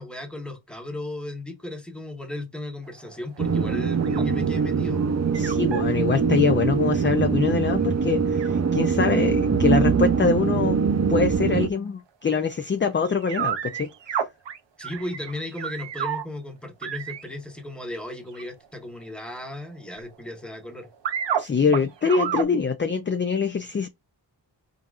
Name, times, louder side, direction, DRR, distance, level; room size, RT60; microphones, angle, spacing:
voice 1, 0.0-5.0 14.8-20.9, left 1 dB, ahead, 1.2 m, -35 dB
sound 1, 2.9-4.7 5.0-5.9 7.3-7.4 7.7-7.8 8.1-8.2 8.4-8.5 11.4-11.5 12.5-12.6 13.1-16.2 16.8-17.3 18.3-18.6 19.0-20.5 20.8-21.4 21.7-22.4, right 8 dB, 75° right, 0.7 m, -30 dB
sound 2, 3.4-11.7, right 5 dB, 40° right, 0.6 m, -23 dB
voice 2, 5.3-10.8 11.1-13.9 21.4-23.9, left 5 dB, 30° left, 0.4 m, -24 dB
4.2 x 3.9 x 2.4 m
wide cardioid pair, 95°, 44 cm